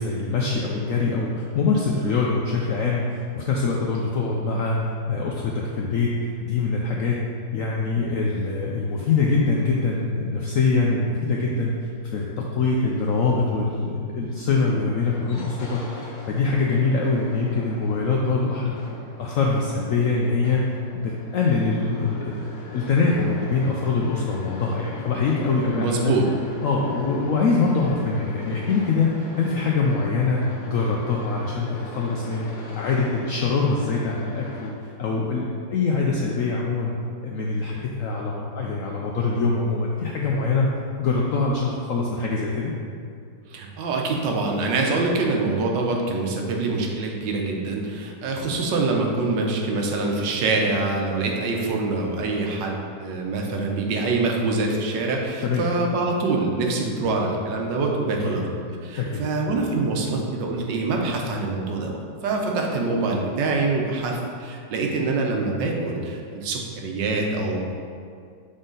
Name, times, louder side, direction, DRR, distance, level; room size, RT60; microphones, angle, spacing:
voice 1, 0.0-4.8 5.1-7.2 7.5-11.7 12.1-18.8 19.2-20.6 20.9-22.5 22.7-26.1 26.6-29.1 29.4-32.5 32.7-34.7 35.0-36.9 37.2-40.7 41.0-42.7 55.4-55.7 58.2-58.4 59.0-59.2, left 4 dB, 80° left, -2 dB, 0.7 m, -23 dB
sound 1, 15.0-34.7, left 1 dB, 50° left, 1.1 m, -41 dB
voice 2, 25.7-26.2 43.5-67.6, right 3 dB, 80° right, 0 dB, 1.4 m, -25 dB
6.3 x 4.0 x 3.9 m, 2.3 s
omnidirectional pair, 1.9 m